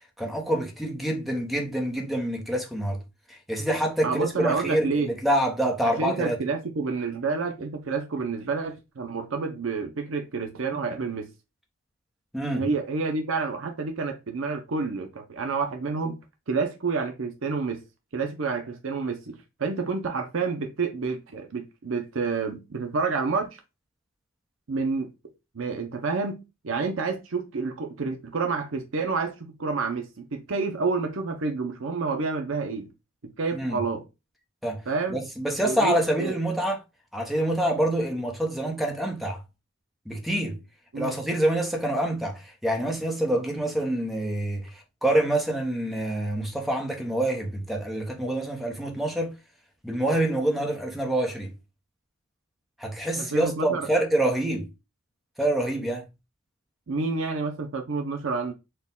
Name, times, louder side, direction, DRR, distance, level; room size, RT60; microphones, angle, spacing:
voice 1, 0.2-3.0 3.3-6.4 12.3-12.6 33.5-33.8 34.6-34.8 35.1-36.8 37.1-39.4 40.1-40.6 41.0-49.3 49.8-51.5 52.8-54.7 55.4-56.0, right 1 dB, ahead, 0.8 m, -26 dB
voice 2, 4.0-5.1 5.8-11.3 12.5-16.2 16.5-17.8 18.1-23.6 24.7-25.1 25.5-32.9 33.2-34.0 34.9-35.2 35.6-36.4 40.9-41.1 53.2-53.9 56.9-58.5, right 4 dB, 65° right, 0.6 m, -29 dB
4.4 x 2.2 x 3.6 m
head